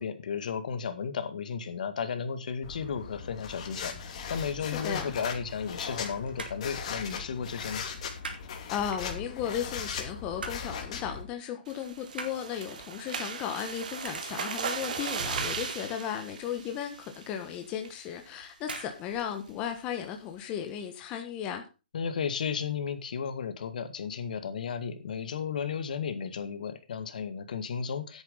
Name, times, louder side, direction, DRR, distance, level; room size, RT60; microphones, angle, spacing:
voice 1, 0.0-7.8 21.9-28.2, left 6 dB, 55° left, 11 dB, 1.9 m, -34 dB
sound 1, 2.6-11.2, left 6 dB, 40° left, 3.0 m, -38 dB
voice 2, 4.6-5.1 8.7-21.6, left 9 dB, 20° left, 5 dB, 1.3 m, -35 dB
sound 2, 5.2-6.0 6.2-6.7 7.1-7.3 7.6-8.5 8.9-9.5 9.9-10.7 11.0-11.3 11.6-13.7 14.0-14.7 15.2-15.5 15.8-15.9 16.2-16.3 16.8-16.9 17.7-18.0 18.6-19.0 19.2-19.3, right 3 dB, 90° right, 4.1 m, -42 dB
sound 3, 11.7-17.4 17.8-18.1 18.4-18.5 18.9-19.2, right 5 dB, 55° right, 2.7 m, -37 dB
10.5 x 8.7 x 5.5 m, 0.32 s
hypercardioid pair, 155°, 5 cm